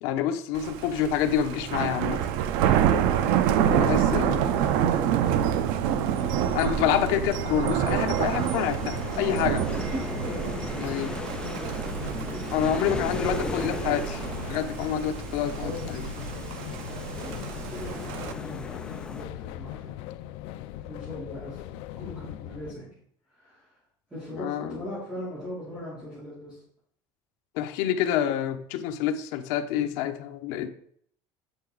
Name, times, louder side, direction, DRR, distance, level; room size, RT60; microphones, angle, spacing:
voice 1, 0.0-2.3 3.7-4.5 6.5-9.6 10.8-11.1 12.5-14.0 14.5-16.0 24.4-24.8 27.6-30.7, left 10 dB, 85° left, 7 dB, 0.9 m, -27 dB
Thunder, 0.6-18.3, right 9 dB, 75° right, 0.7 m, -27 dB
voice 2, 3.6-4.7 4.9-5.6 9.1-9.6 9.9-12.4 12.9-13.8 15.6-16.4 16.8-20.2 20.8-23.0 23.3-23.8 24.1-26.6, left 1 dB, 10° right, -11 dB, 3.5 m, -40 dB
sound 1, 3.7-22.7, left 13 dB, 70° left, 0.5 m, -40 dB
sound 2, 7.9-19.2, left 3 dB, 10° left, 0.4 m, -39 dB
8.3 x 6.7 x 4.0 m, 0.64 s
cardioid pair, 175°, 10 cm